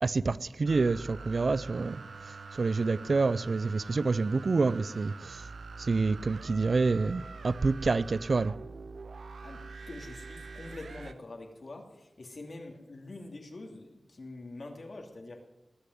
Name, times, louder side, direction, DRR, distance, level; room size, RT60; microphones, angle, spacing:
voice 1, 0.0-5.5 5.8-8.5, right 3 dB, 60° right, 0.5 m, -28 dB
sound 1, 0.7-11.1, right 4 dB, 80° right, 0.8 m, -45 dB
voice 2, 9.4-15.5, left 2 dB, 60° left, 2.8 m, -45 dB
20.0 x 6.9 x 9.4 m
wide cardioid pair, 85°, 0 cm